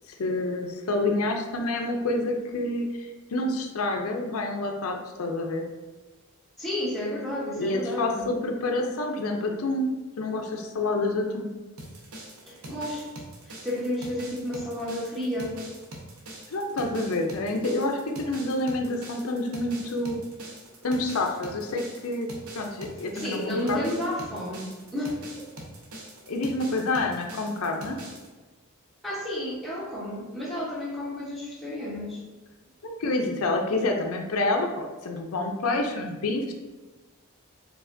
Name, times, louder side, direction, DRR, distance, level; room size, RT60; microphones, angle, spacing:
voice 1, 0.1-5.7 7.5-11.5 16.5-20.3 20.8-22.3 22.6-23.9 26.3-28.0 32.8-36.5, left 2 dB, 75° left, 3 dB, 0.5 m, -28 dB
voice 2, 6.6-8.3 12.5-13.1 13.5-15.6 23.2-25.5 29.0-32.2, left 1 dB, ahead, -7 dB, 1.0 m, -31 dB
sound 1, 11.8-28.3, right 1 dB, 75° right, 0.9 m, -43 dB
4.8 x 3.9 x 2.5 m, 1.2 s
head